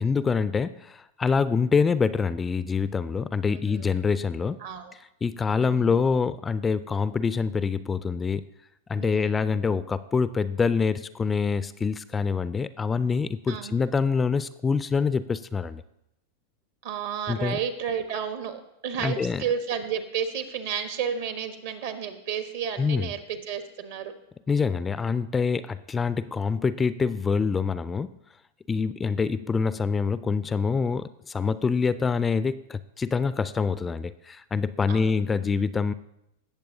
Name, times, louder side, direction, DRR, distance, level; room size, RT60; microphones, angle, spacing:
voice 1, 0.0-4.6 5.2-8.5 8.9-15.8 17.3-17.6 19.0-19.4 22.8-23.1 24.5-28.2 28.7-35.9, left 5 dB, 20° left, 15 dB, 0.3 m, -25 dB
voice 2, 3.5-4.0 4.6-4.9 5.6-5.9 9.0-9.5 13.5-13.8 16.8-24.1 34.9-35.1, right 7 dB, 65° right, 8 dB, 1.2 m, -32 dB
17.0 x 6.9 x 2.8 m, 0.82 s
hypercardioid pair, 100°, 0 cm